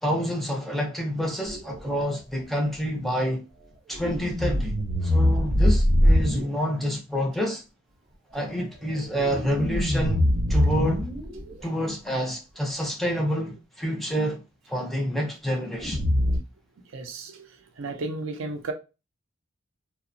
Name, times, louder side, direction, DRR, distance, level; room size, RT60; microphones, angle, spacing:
voice 1, 0.0-3.4 3.9-4.7 5.0-7.6 8.3-11.1 11.6-16.0, equal, ahead, 0.4 m, -28 dB
sound 1, 1.5-1.8 3.9-6.4 9.0-11.6 15.8-16.4, equal, 30° right, 0.7 m, -23 dB
voice 2, 16.9-17.3 17.8-18.7, right 3 dB, 65° right, 0.5 m, -33 dB
2.8 x 2.0 x 2.5 m
head